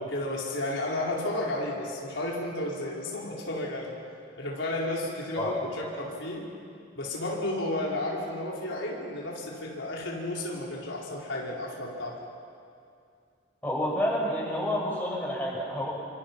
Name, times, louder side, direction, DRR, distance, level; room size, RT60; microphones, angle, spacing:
voice 1, 0.0-4.0 4.4-6.5 7.0-12.1, left 1 dB, 80° left, -3 dB, 4.6 m, -32 dB
voice 2, 13.6-15.9, equal, 10° left, -4 dB, 6.4 m, -29 dB
29.5 x 26.0 x 6.1 m, 2.4 s
head